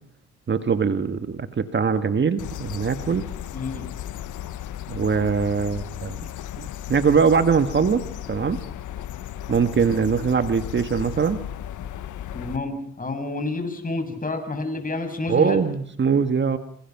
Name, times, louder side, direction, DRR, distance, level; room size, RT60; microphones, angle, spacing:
voice 1, 0.5-3.2 4.9-6.2 6.9-8.6 9.5-11.4 15.3-16.6, right 6 dB, 40° right, 9 dB, 1.7 m, -22 dB
sound 1, 2.4-12.6, left 11 dB, 80° left, 1.4 m, -35 dB
voice 2, 3.5-3.9 12.3-15.6, left 2 dB, 25° left, 6 dB, 7.6 m, -29 dB
27.0 x 27.0 x 6.0 m, 0.62 s
cardioid pair, 90°, 30 cm